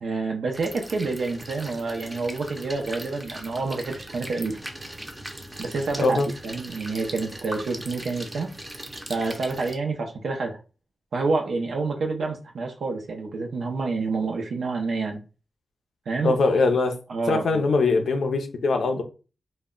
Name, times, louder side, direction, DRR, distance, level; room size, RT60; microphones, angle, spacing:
voice 1, 0.0-4.6 5.6-6.2 6.4-8.5 9.1-10.6 11.1-15.2 16.1-16.4 17.1-17.6, right 3 dB, 80° right, 0.4 m, -28 dB
sound 1, 0.5-9.8, right 1 dB, 15° right, 0.5 m, -39 dB
voice 2, 16.2-17.0 17.3-19.0, left 3 dB, 85° left, 0.4 m, -22 dB
2.1 x 2.0 x 3.6 m
cardioid pair, 70°, 0 cm